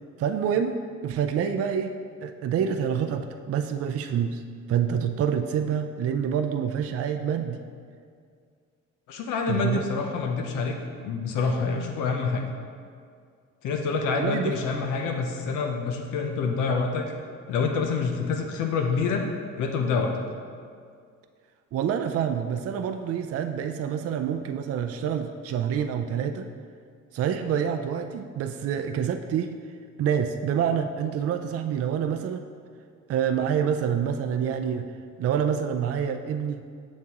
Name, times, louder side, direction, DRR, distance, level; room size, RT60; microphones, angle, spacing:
voice 1, 0.2-0.8 1.0-1.9 2.2-4.4 4.7-7.6 9.5-9.8 14.1-14.5 21.7-26.5 27.1-29.6 30.0-32.5 33.1-34.9 35.2-36.7, right 8 dB, 50° right, 7 dB, 0.4 m, -27 dB
voice 2, 9.1-10.8 11.0-12.4 13.6-17.1 17.5-19.2 19.6-20.1, left 5 dB, 90° left, 2 dB, 0.7 m, -27 dB
7.2 x 6.4 x 2.9 m, 2.2 s
cardioid pair, 90°, 30 cm